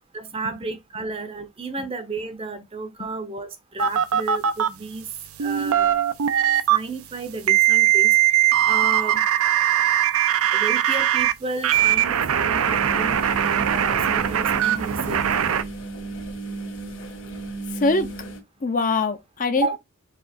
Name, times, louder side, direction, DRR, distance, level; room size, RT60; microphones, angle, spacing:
voice 1, 0.1-5.0 5.4-6.0 6.7-8.2 8.6-9.2 10.5-15.2 19.6-19.8, right 3 dB, 25° right, 0.6 m, -32 dB
sound 1, 3.8-4.7 5.4-6.8 7.5-11.3 11.6-15.6, right 10 dB, 70° right, 0.5 m, -20 dB
sound 2, 12.6-18.4, right 3 dB, 60° left, 1.5 m, -34 dB
voice 2, 17.7-18.1 18.6-19.8, left 3 dB, 35° left, 0.5 m, -23 dB
4.9 x 2.3 x 4.2 m
head